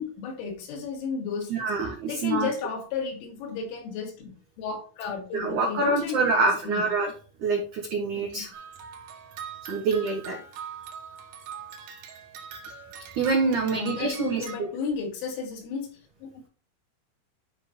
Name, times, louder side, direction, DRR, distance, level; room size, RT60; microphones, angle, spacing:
voice 1, 0.0-1.7 2.1-4.3 4.6-6.9 8.1-8.5 13.6-15.9 16.2-16.3, left 5 dB, 75° left, 2 dB, 4.3 m, -33 dB
voice 2, 1.5-2.5 5.3-7.1 7.4-8.5 9.6-10.4 13.2-14.4, right 3 dB, 85° right, 1 dB, 1.7 m, -26 dB
sound 1, 8.5-14.6, right 7 dB, 70° right, 3.1 m, -42 dB
12.5 x 5.1 x 2.8 m, 0.40 s
omnidirectional pair, 5.8 m